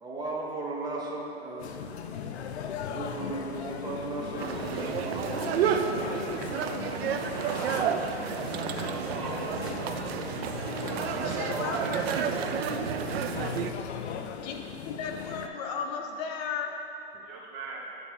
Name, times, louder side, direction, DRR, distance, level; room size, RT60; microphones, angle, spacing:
voice 1, 0.0-1.9 2.9-6.5 7.5-8.0 17.1-17.2, right 2 dB, 10° right, -3 dB, 0.7 m, -37 dB
sound 1, 1.6-15.5, left 7 dB, 85° left, 0.5 m, -38 dB
sound 2, 4.4-13.7, right 8 dB, 70° right, 0.5 m, -31 dB
voice 2, 7.3-7.9 8.8-9.4 10.6-12.0 17.3-17.8, right 4 dB, 40° right, -3 dB, 1.3 m, -40 dB
voice 3, 11.2-12.3 14.4-16.7, left 5 dB, 40° left, 2 dB, 0.8 m, -35 dB
8.7 x 3.5 x 4.3 m, 3.0 s
hypercardioid pair, 130°, 32 cm